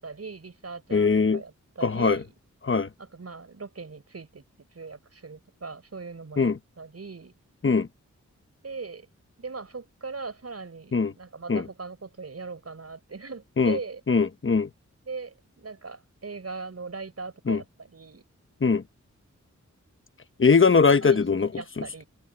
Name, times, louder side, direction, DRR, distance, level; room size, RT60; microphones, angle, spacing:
voice 1, 0.0-2.3 3.0-4.4 4.7-7.3 8.6-9.1 9.4-14.0 15.1-18.2 21.0-22.0, right 4 dB, 55° right, 5.8 m, -40 dB
voice 2, 0.9-1.4 1.8-2.2 2.6-2.9 6.4-6.6 7.6-7.9 10.9-11.1 11.5-11.6 13.6-13.8 14.1-14.7 17.5-17.6 18.6-18.8 20.4-21.5, left 5 dB, 40° left, 1.1 m, -21 dB
wide cardioid pair, 85°, 30 cm